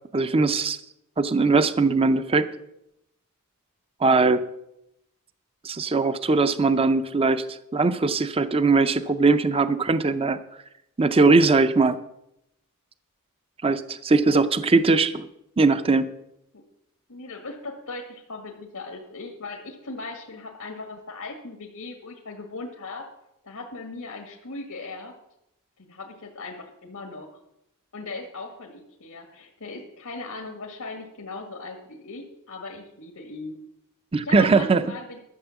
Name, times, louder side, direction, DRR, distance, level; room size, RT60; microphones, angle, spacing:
voice 1, 0.1-0.8 1.2-2.5 4.0-4.5 5.6-10.4 11.0-12.0 13.6-15.3 15.6-16.1 34.1-34.8, right 3 dB, 25° right, 12 dB, 0.5 m, -20 dB
voice 2, 17.1-23.1 23.4-25.1 25.8-27.3 27.9-33.6 34.2-35.2, left 3 dB, 90° left, 1 dB, 1.7 m, -38 dB
12.5 x 7.1 x 7.0 m, 0.82 s
head